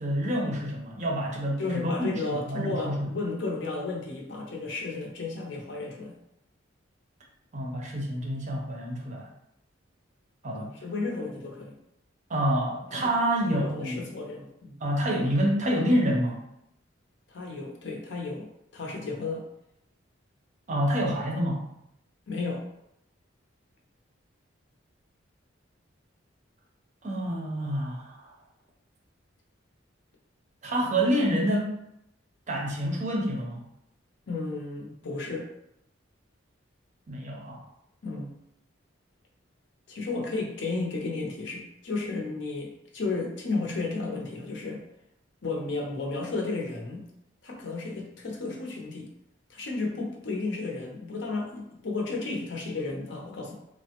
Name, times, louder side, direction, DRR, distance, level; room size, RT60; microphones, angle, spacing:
voice 1, 0.0-3.1 7.5-9.3 10.4-10.7 12.3-14.1 14.8-16.4 20.7-21.6 27.0-28.3 30.6-31.7 32.5-33.6 37.1-37.6, equal, 35° right, -1 dB, 0.5 m, -27 dB
voice 2, 1.6-6.1 10.6-11.8 13.5-14.8 17.3-19.5 22.3-22.6 34.3-35.5 38.0-38.3 39.9-44.8 45.4-47.0 47.4-49.1 49.5-53.5, left 3 dB, 60° left, 0 dB, 0.6 m, -33 dB
3.2 x 2.0 x 2.8 m, 0.80 s
head